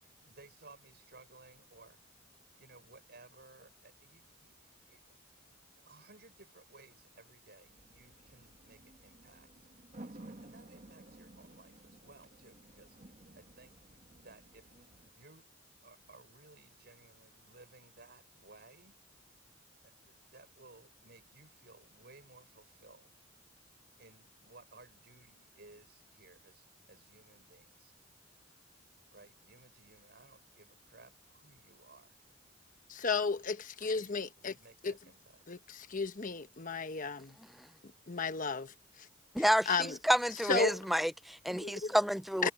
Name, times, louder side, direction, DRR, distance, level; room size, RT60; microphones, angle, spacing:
voice 1, 0.0-2.1 2.6-5.4 5.8-9.5 10.0-14.0 14.2-14.9 15.2-15.5 15.8-18.9 19.8-23.1 24.0-27.9 29.1-32.2 33.9-35.4, right 3 dB, 55° right, 7.0 m, -59 dB
sound 1, 7.7-15.1, right 1 dB, 40° right, 1.5 m, -55 dB
voice 2, 32.9-34.6 34.8-34.9 35.5-37.4 38.1-38.7 39.4-40.0 40.4-40.8 41.6-41.9 42.4-42.5, left 4 dB, 45° left, 1.1 m, -34 dB
voice 3, 39.3-39.7 40.0-42.5, equal, ahead, 0.5 m, -29 dB
head